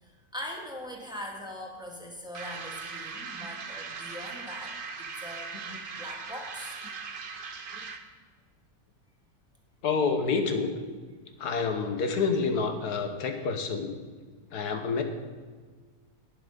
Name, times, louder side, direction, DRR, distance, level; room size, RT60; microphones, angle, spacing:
voice 1, 0.0-5.6 5.9-6.8, left 1 dB, 5° right, 0 dB, 1.7 m, -41 dB
sound 1, 2.3-8.1, right 5 dB, 45° right, 0.9 m, -39 dB
voice 2, 9.8-10.7 11.4-13.9 14.5-15.0, left 5 dB, 90° left, 6 dB, 1.7 m, -28 dB
11.0 x 9.3 x 5.4 m, 1.5 s
omnidirectional pair, 1.6 m